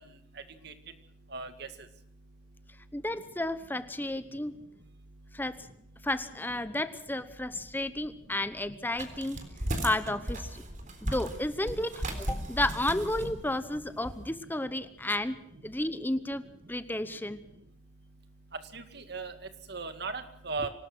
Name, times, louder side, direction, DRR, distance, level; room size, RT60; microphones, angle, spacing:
voice 1, 1.3-1.7 18.7-19.3 19.7-20.7, right 4 dB, 60° right, 9 dB, 2.1 m, -36 dB
voice 2, 2.9-4.5 5.3-5.7 6.0-9.4 9.8-10.6 11.0-15.4 15.6-16.4 16.7-17.4, left 1 dB, 10° left, 12 dB, 0.9 m, -32 dB
sound 1, 8.9-14.2, right 1 dB, 45° right, 3.8 m, -36 dB
25.5 x 19.0 x 6.2 m, 0.72 s
head